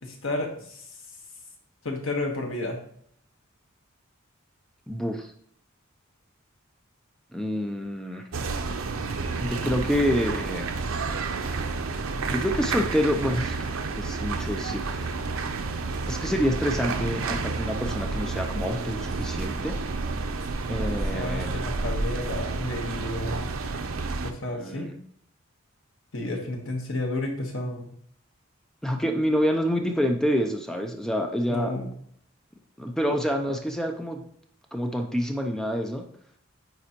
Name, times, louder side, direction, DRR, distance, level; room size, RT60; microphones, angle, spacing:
voice 1, 0.0-0.8 1.8-2.8 20.5-23.5 24.2-24.9 26.1-27.9 31.5-31.9, left 2 dB, 70° left, 1 dB, 1.4 m, -32 dB
voice 2, 4.9-5.3 7.3-8.3 9.4-10.7 12.2-13.7 14.0-15.1 16.1-19.8 20.7-21.5 24.5-25.0 28.8-31.7 32.8-34.3 34.7-36.1, equal, 5° left, 3 dB, 0.6 m, -27 dB
sound 1, 8.3-24.3, right 3 dB, 80° right, 0.6 m, -30 dB
9.4 x 3.9 x 3.0 m, 0.63 s
head